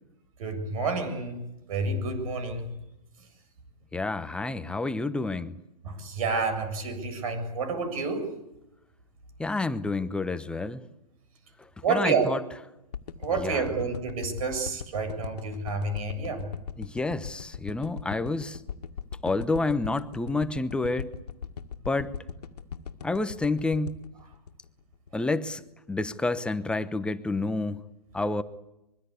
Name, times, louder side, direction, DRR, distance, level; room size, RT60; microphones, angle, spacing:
voice 1, 0.4-1.4 1.7-2.8 5.8-8.3 11.8-12.3 13.2-16.5, right 4 dB, 60° right, 10 dB, 7.4 m, -29 dB
voice 2, 3.9-5.5 9.4-10.9 11.9-12.4 13.4-13.7 16.8-18.6 19.2-21.1 21.8-22.1 23.0-24.0 25.1-25.6 25.9-27.8 28.1-28.4, left 3 dB, 5° left, 11 dB, 0.9 m, -29 dB
sound 1, 12.9-25.2 25.7-25.8, left 7 dB, 75° left, 2.0 m, -39 dB
24.5 x 23.0 x 8.3 m, 0.90 s
hypercardioid pair, 130°, 21 cm